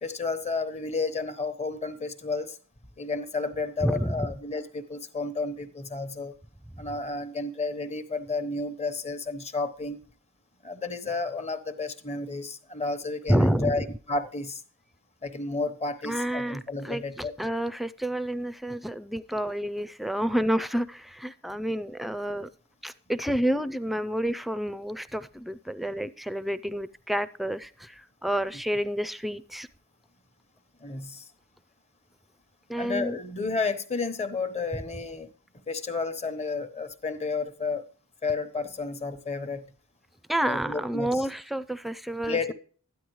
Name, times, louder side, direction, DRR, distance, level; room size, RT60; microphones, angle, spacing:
voice 1, 0.0-2.6 3.0-6.4 6.8-10.0 10.6-14.6 15.2-17.3 30.8-31.3 32.7-35.3 35.7-37.9 38.2-39.7 40.4-41.3 42.2-42.5, left 3 dB, 30° left, 1.0 m, -31 dB
voice 2, 3.8-4.2 13.3-13.8 16.0-16.6 16.8-22.5 22.8-29.7 32.7-33.2 40.3-42.5, right 1 dB, ahead, 0.4 m, -29 dB
13.0 x 10.0 x 3.1 m
head